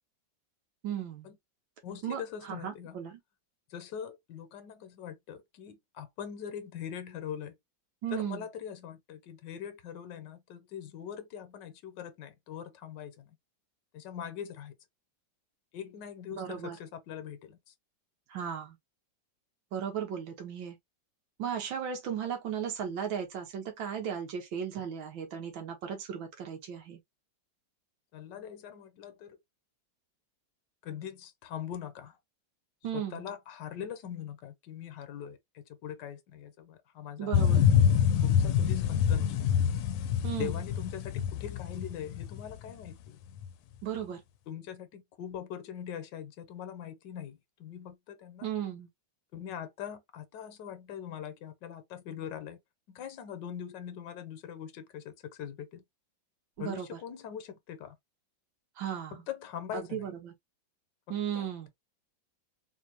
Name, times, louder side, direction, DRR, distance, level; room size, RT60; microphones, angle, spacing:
voice 1, 0.8-1.3 2.0-2.2 2.5-3.2 8.0-8.5 16.4-16.8 18.3-18.8 19.7-20.8 21.4-27.0 32.8-33.2 37.2-37.6 40.2-40.6 43.8-44.2 48.4-48.9 56.6-56.9 58.8-59.2 59.7-60.3 61.1-61.7, right 8 dB, 90° right, 1.8 m, -36 dB
voice 2, 1.8-3.0 3.7-7.5 8.1-13.4 13.9-14.7 15.7-17.6 28.1-29.4 30.8-32.2 32.9-37.6 38.2-39.4 40.3-43.2 44.5-48.5 49.3-52.6 52.9-55.8 56.6-58.0 59.1-60.1 61.1-61.5, left 9 dB, 70° left, 1.4 m, -42 dB
sound 1, 37.3-42.9 43.4-43.5, left 8 dB, 90° left, 1.3 m, -26 dB
4.0 x 2.7 x 2.8 m
omnidirectional pair, 2.0 m